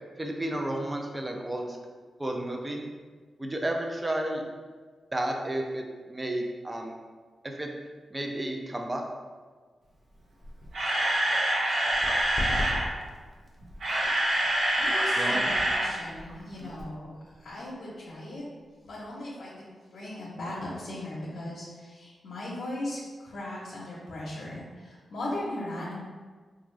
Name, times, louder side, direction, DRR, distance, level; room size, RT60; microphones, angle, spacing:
voice 1, 0.2-1.8 2.2-2.8 3.4-4.4 5.1-6.9 7.4-7.7 8.1-9.0 15.2-15.4 16.6-16.7, right 1 dB, 20° right, 2 dB, 0.5 m, -32 dB
Camera, 10.4-12.8 13.6-15.9 16.2-16.3 16.8-16.9, right 1 dB, 80° right, 0.7 m, -26 dB
sound 1, 11.9-19.2, left 1 dB, 35° left, 0.8 m, -40 dB
voice 2, 14.8-17.1 17.4-18.4 18.8-19.5 19.9-25.9, left 1 dB, 80° left, -7 dB, 0.7 m, -38 dB
3.6 x 2.4 x 3.2 m, 1.5 s
cardioid pair, 65°, 0 cm